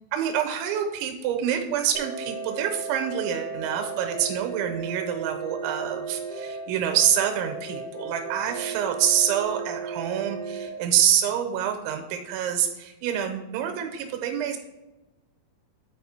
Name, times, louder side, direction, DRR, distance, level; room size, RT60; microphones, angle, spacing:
voice 1, 0.1-14.6, right 9 dB, 85° right, 5 dB, 3.1 m, -26 dB
sound 1, 1.9-10.7, right 4 dB, 55° right, 1.7 m, -35 dB
8.9 x 4.9 x 4.2 m, 1.0 s
omnidirectional pair, 5.4 m